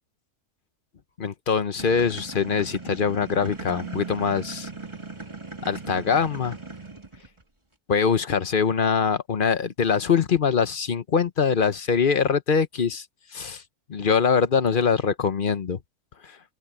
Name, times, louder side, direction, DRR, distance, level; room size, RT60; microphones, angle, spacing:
voice 1, 1.2-4.7 5.6-6.6 7.9-13.0 13.3-13.6 13.9-15.8 16.2-16.3, left 6 dB, 40° left, 0.9 m, -23 dB
sound 1, 1.8-7.4, right 3 dB, 20° right, 2.5 m, -38 dB
open air
omnidirectional pair, 1.6 m